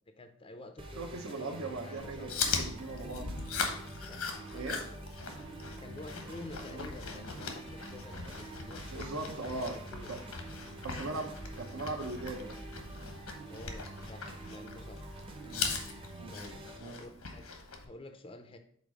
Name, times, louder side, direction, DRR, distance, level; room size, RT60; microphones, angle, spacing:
voice 1, 0.1-2.3 4.0-5.0 5.8-10.1 13.5-15.0 16.3-17.4 17.8-18.6, left 2 dB, 25° left, 7 dB, 0.4 m, -50 dB
sound 1, 0.8-16.8, right 2 dB, 25° right, 0.7 m, -46 dB
voice 2, 1.0-3.3 4.5-4.8 6.7-7.2 8.9-9.8 10.1-10.2 10.8-12.6 15.4-15.7 16.2-16.3 16.8-17.0, right 2 dB, 75° right, 3 dB, 0.9 m, -39 dB
Chewing mastication, 2.0-17.9, left 5 dB, 90° left, 1.1 m, -40 dB
5.1 x 4.2 x 6.0 m, 0.62 s
head